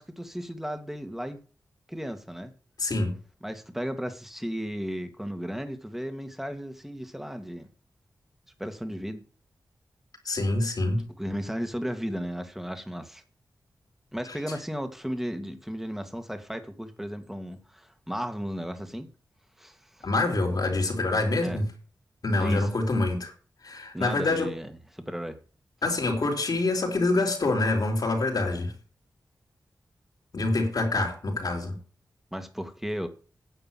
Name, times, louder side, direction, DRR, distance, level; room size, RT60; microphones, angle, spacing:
voice 1, 0.0-1.4 1.9-2.5 3.4-7.7 8.6-9.2 11.2-13.2 14.1-19.1 19.6-20.1 21.4-21.6 22.4-22.7 23.9-25.4 31.3-31.4 32.3-33.1, equal, 5° right, 2.1 m, -34 dB
voice 2, 2.8-3.2 10.2-11.0 20.0-21.6 22.2-23.3 23.6-24.5 25.8-28.7 30.3-31.7, left 2 dB, 65° left, 3.9 m, -26 dB
10.0 x 6.7 x 7.7 m
cardioid pair, 45°, 7 cm